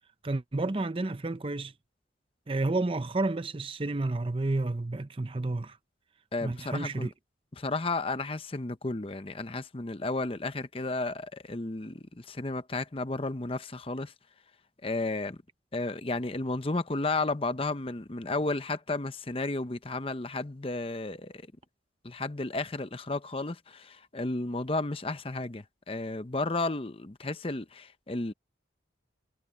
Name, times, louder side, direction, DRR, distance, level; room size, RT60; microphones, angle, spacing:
voice 1, 0.2-1.7 2.5-5.8 6.4-7.1, right 2 dB, 30° right, 0.6 m, -30 dB
voice 2, 6.3-7.1 7.6-14.1 14.8-15.4 15.7-21.3 22.0-28.3, left 2 dB, 30° left, 0.8 m, -33 dB
head